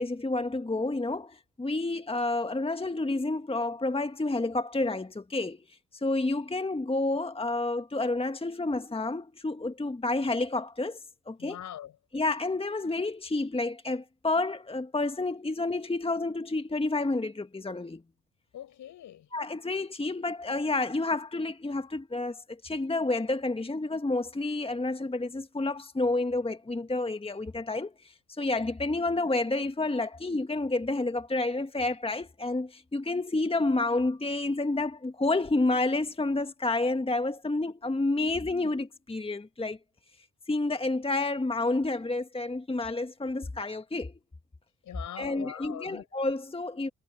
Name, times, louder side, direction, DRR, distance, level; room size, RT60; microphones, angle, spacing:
voice 1, 0.0-5.6 5.9-11.6 12.1-18.0 19.3-39.8 40.5-44.1 45.2-46.9, left 2 dB, 15° left, 1.7 m, -29 dB
voice 2, 11.4-12.0 18.5-19.3 44.8-46.0, left 11 dB, 65° left, 7.0 m, -42 dB
hypercardioid pair, 45°, 32 cm